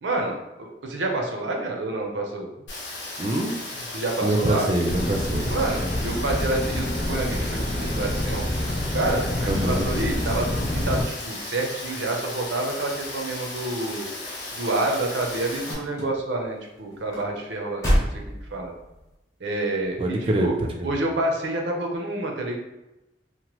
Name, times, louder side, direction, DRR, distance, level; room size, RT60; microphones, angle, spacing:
voice 1, 0.0-2.5 3.9-4.7 5.4-8.5 8.9-14.1 14.5-17.9 18.2-18.7 19.4-20.5 20.8-22.6, right 2 dB, 80° right, 1 dB, 0.6 m, -28 dB
Rain, 2.7-15.7, left 2 dB, 80° left, 0.8 m, -36 dB
voice 2, 3.2-3.8 4.2-5.5 9.5-9.9 20.0-20.5 20.8-20.9, right 1 dB, 30° right, 2 dB, 0.4 m, -25 dB
sound 1, 4.9-11.0, left 1 dB, 50° left, 0.6 m, -27 dB
sound 2, 14.5-19.1 19.8-20.2 20.6-20.7, equal, 20° left, 0.8 m, -29 dB
2.9 x 2.1 x 3.0 m, 0.97 s
head